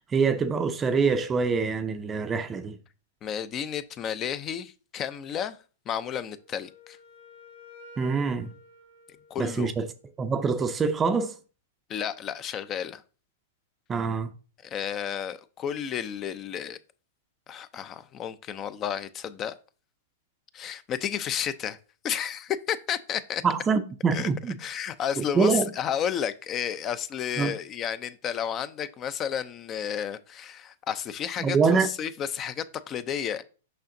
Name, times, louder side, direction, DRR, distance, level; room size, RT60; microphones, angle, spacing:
voice 1, 0.1-2.8 8.0-8.5 9.4-9.9 10.2-11.4 13.9-14.3 23.4-24.5 25.2-25.7 27.4-27.5 31.4-31.9, right 5 dB, 20° right, 0.5 m, -25 dB
voice 2, 3.2-5.6 5.9-7.0 9.3-9.7 11.9-13.0 14.6-16.8 17.5-19.5 20.5-21.8 22.0-23.4 24.1-24.3 24.6-33.4, left 9 dB, 30° left, 0.5 m, -32 dB
Wind instrument woodwind instrument, 6.2-10.1, left 2 dB, 80° left, 2.4 m, -52 dB
6.4 x 5.7 x 2.7 m
hypercardioid pair, 110°, 0 cm